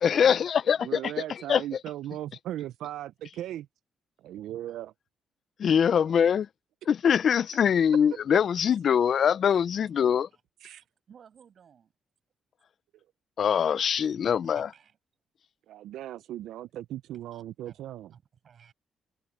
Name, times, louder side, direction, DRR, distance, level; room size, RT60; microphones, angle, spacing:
voice 1, 0.0-1.6 5.6-6.5 6.9-10.3 13.4-14.7, left 8 dB, 55° left, 0.5 m, -23 dB
voice 2, 0.8-3.7 4.2-4.9 10.6-10.8 15.7-18.1, right 13 dB, 80° right, 0.4 m, -38 dB
voice 3, 9.2-9.6 10.3-10.4 11.1-11.9 14.0-14.1 14.4-15.0 17.1-17.8 18.1-18.7, right 7 dB, 55° right, 6.8 m, -57 dB
cardioid pair, 90°, 0 cm